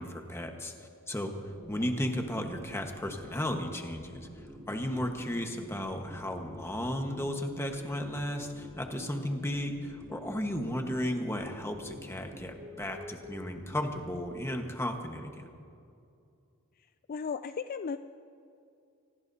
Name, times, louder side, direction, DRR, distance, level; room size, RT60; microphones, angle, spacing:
voice 1, 0.0-1.4 1.7-4.3 4.7-15.5, left 1 dB, 10° left, 4 dB, 1.3 m, -34 dB
sound 1, 1.5-14.3, equal, 15° right, 3.3 m, -49 dB
voice 2, 17.1-18.0, left 5 dB, 40° left, 10 dB, 0.4 m, -35 dB
26.5 x 19.0 x 2.8 m, 2.5 s
head